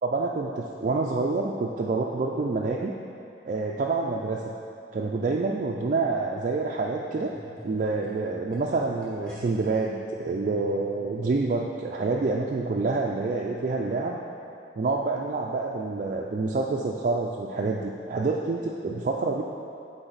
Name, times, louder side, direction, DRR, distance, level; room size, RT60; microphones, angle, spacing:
voice 1, 0.0-3.0 3.5-4.5 4.9-7.3 7.6-14.2 14.8-19.4, right 3 dB, 45° right, -1 dB, 0.3 m, -27 dB
sound 1, 5.4-9.8 10.6-10.7, equal, 5° left, 1.2 m, -47 dB
8.9 x 3.9 x 4.0 m, 2.6 s
head